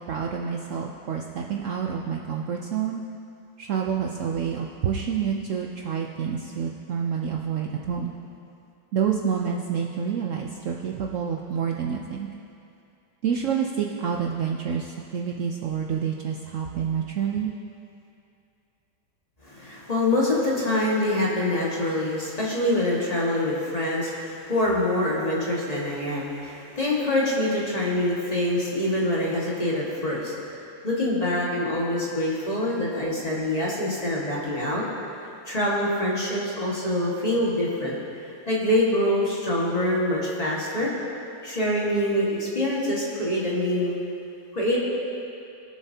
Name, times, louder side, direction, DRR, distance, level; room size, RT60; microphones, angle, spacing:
voice 1, 0.0-3.0 3.6-8.1 8.9-12.3 13.2-17.5, right 7 dB, 85° right, 0 dB, 0.6 m, -28 dB
voice 2, 19.4-34.8 35.4-38.0 38.5-40.9 41.4-44.0 44.5-44.8, left 1 dB, 20° left, -5 dB, 1.5 m, -25 dB
22.0 x 7.3 x 2.8 m, 2.6 s
omnidirectional pair, 2.1 m